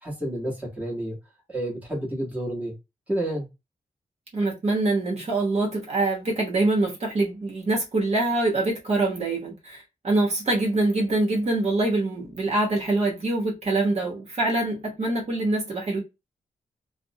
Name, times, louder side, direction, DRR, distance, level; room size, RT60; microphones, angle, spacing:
voice 1, 0.0-1.2 1.5-2.7 3.1-3.5, right 1 dB, 10° right, 1.0 m, -30 dB
voice 2, 4.3-16.0, right 2 dB, 50° right, 0.9 m, -24 dB
2.5 x 2.0 x 2.6 m
wide cardioid pair, 130°, 14 cm